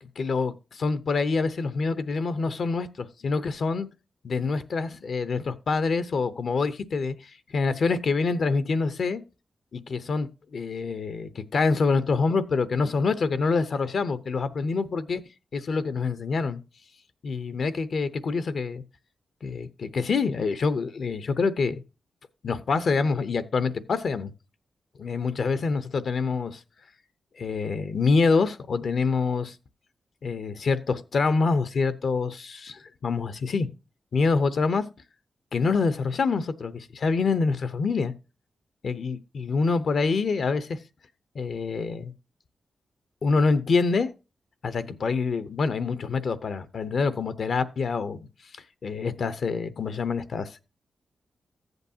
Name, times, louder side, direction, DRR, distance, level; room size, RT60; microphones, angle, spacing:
voice 1, 0.0-3.9 4.2-9.2 9.7-15.2 15.5-16.6 17.2-18.8 19.4-21.8 22.4-24.3 25.0-26.6 27.4-29.6 30.2-33.7 34.1-34.9 35.5-38.1 38.8-40.8 41.3-42.1 43.2-44.1 44.6-48.3 48.8-50.6, left 4 dB, 65° left, 0.7 m, -26 dB
14.0 x 8.0 x 2.7 m
wide cardioid pair, 95°, 0 cm